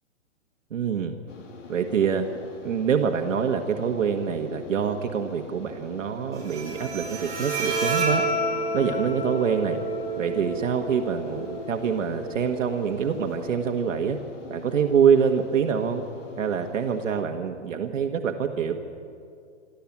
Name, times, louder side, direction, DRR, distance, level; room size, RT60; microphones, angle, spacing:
voice 1, 0.7-1.1 1.7-2.3 2.6-8.2 8.7-9.8 10.2-14.2 14.5-16.0 16.4-18.8, right 7 dB, 85° right, 4 dB, 1.7 m, -25 dB
sound 1, 1.3-17.2, left 4 dB, 75° left, 3.0 m, -44 dB
Bowed string instrument, 6.3-13.3, right 2 dB, 10° right, 2.8 m, -30 dB
27.5 x 13.0 x 7.3 m, 2.4 s
hypercardioid pair, 175°, 37 cm